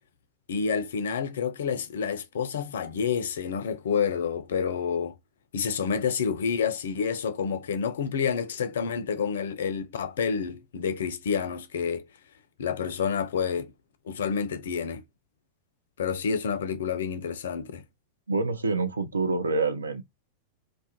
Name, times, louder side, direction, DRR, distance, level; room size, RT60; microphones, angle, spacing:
voice 1, 0.5-5.1 5.5-12.1 12.6-13.7 14.1-15.0 16.0-17.8, left 6 dB, 60° left, 0.3 m, -29 dB
voice 2, 18.3-20.0, right 3 dB, 75° right, 0.4 m, -27 dB
2.2 x 2.0 x 2.8 m
figure-of-eight pair, 90°, 0 cm